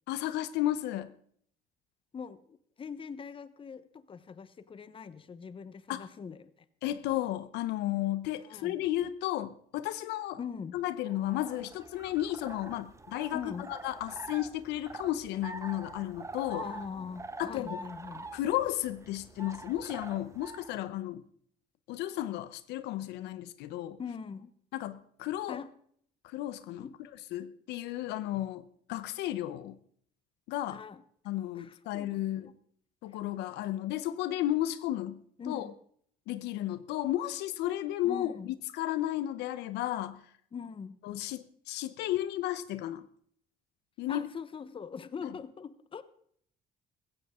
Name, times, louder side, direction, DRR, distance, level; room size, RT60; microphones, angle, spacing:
voice 1, 0.1-1.1 5.9-6.1 6.8-10.4 10.7-16.7 17.4-17.8 18.3-21.2 21.9-24.0 24.7-25.6 26.2-26.9 27.3-28.6 28.9-29.8 30.5-30.8 31.2-32.5 33.0-35.2 35.5-35.7 36.3-40.2 41.0-43.0 44.0-44.3, left 13 dB, 85° left, 0.8 m, -33 dB
voice 2, 2.8-6.5 8.4-8.8 10.4-10.8 13.3-13.7 16.5-18.3 24.0-24.5 25.5-25.7 26.8-27.0 30.7-31.0 31.5-32.1 32.4-32.5 35.4-35.7 38.0-38.5 40.5-41.0 44.1-46.0, left 6 dB, 30° left, 1.0 m, -42 dB
sound 1, 11.1-20.8, right 3 dB, 15° right, 1.1 m, -46 dB
16.0 x 15.0 x 3.7 m
cardioid pair, 110°, 17 cm